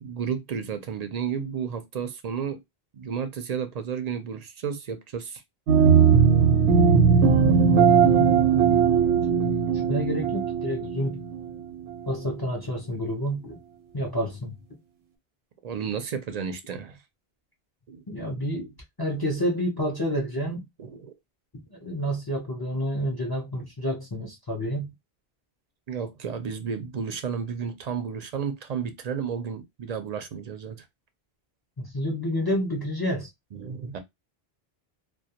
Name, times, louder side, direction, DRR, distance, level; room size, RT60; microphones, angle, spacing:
voice 1, 0.0-2.6 2.9-5.4 15.6-17.0 17.9-18.0 20.8-21.1 25.9-30.8 33.5-34.0, right 7 dB, 55° right, 0.5 m, -32 dB
sound 1, 5.7-12.2, right 6 dB, 85° right, 0.8 m, -19 dB
voice 2, 7.1-7.6 9.9-11.2 12.1-13.6 13.9-14.6 18.1-20.7 21.5-24.9 31.8-33.3, equal, 35° left, 0.4 m, -29 dB
2.2 x 2.2 x 2.7 m
omnidirectional pair, 1.0 m